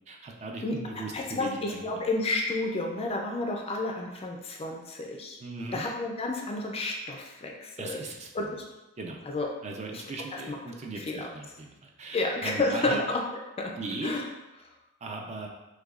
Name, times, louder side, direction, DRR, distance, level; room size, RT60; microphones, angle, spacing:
voice 1, 0.1-2.0 5.4-5.9 7.8-8.6 9.0-9.2 9.6-13.0 13.8-14.1 15.0-15.5, right 3 dB, 30° right, 1 dB, 0.4 m, -38 dB
voice 2, 1.1-5.4 5.7-8.0 8.3-8.6 9.3-9.5 10.3-10.6 11.1-11.3 12.1-13.2 13.6-13.7 14.0-14.2, left 2 dB, 25° left, 1 dB, 0.4 m, -30 dB
6.2 x 2.3 x 2.4 m, 1.0 s
head